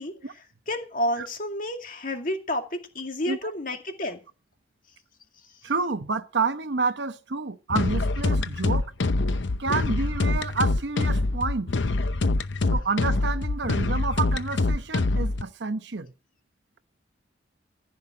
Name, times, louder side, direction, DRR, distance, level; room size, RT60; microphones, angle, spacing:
voice 1, 0.0-4.2 5.4-5.5, left 1 dB, 45° left, 2.2 m, -31 dB
voice 2, 5.6-8.9 9.6-11.7 12.7-16.1, right 4 dB, 70° right, 0.9 m, -29 dB
sound 1, 7.7-15.4, left 2 dB, 80° left, 0.7 m, -25 dB
15.0 x 5.7 x 8.6 m
head